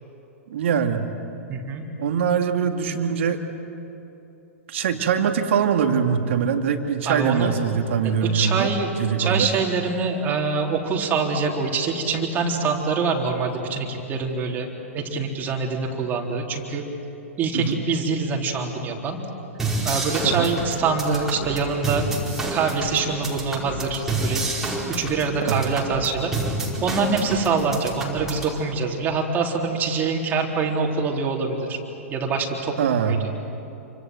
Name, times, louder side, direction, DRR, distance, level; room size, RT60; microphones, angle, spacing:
voice 1, 0.5-1.1 2.0-3.4 4.7-8.7 9.0-9.5 17.5-17.8 20.3-20.5 25.5-25.6 32.8-33.3, right 7 dB, 60° right, 5 dB, 2.2 m, -22 dB
voice 2, 1.5-1.9 7.0-7.5 8.2-8.9 9.2-16.8 17.4-19.2 19.8-22.1 22.5-24.5 24.9-26.3 26.8-31.8 32.1-33.2, right 4 dB, 25° right, 0 dB, 3.9 m, -25 dB
sound 1, 19.6-28.6, right 2 dB, 5° right, 5.1 m, -29 dB
28.5 x 25.5 x 7.9 m, 2.9 s
figure-of-eight pair, 105°, 8 cm